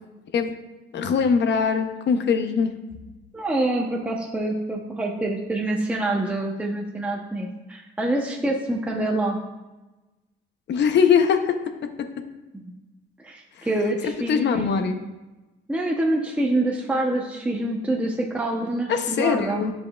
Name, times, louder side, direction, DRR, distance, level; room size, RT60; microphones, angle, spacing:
voice 1, 0.9-2.7 10.7-11.6 13.6-13.7 14.0-15.0 18.9-19.7, left 6 dB, 60° left, 7 dB, 0.7 m, -21 dB
voice 2, 3.3-9.4 13.2-14.9 15.7-19.6, right 1 dB, 5° right, -1 dB, 0.8 m, -26 dB
8.8 x 5.2 x 2.3 m, 1.1 s
cardioid pair, 90°, 20 cm